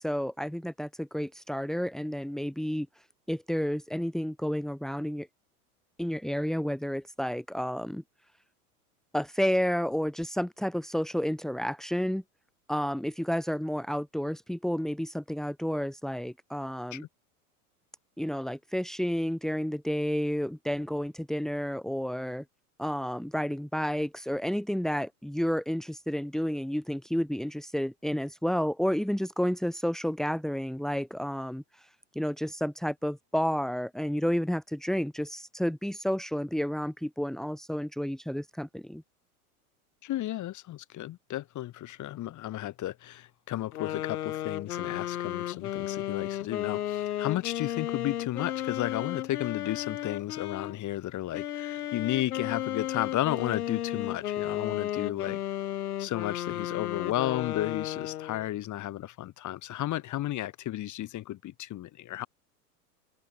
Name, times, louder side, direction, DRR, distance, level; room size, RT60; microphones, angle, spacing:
voice 1, 0.0-2.9 3.3-5.3 6.0-8.0 9.1-12.2 12.7-17.0 18.2-22.4 22.8-39.0, equal, ahead, 4.9 m, -31 dB
voice 2, 40.0-55.4 56.0-62.3, left 14 dB, 40° left, 3.6 m, -33 dB
sound 1, 43.7-50.7 51.3-58.5, left 12 dB, 75° left, 5.0 m, -34 dB
hypercardioid pair, 90°, 45 cm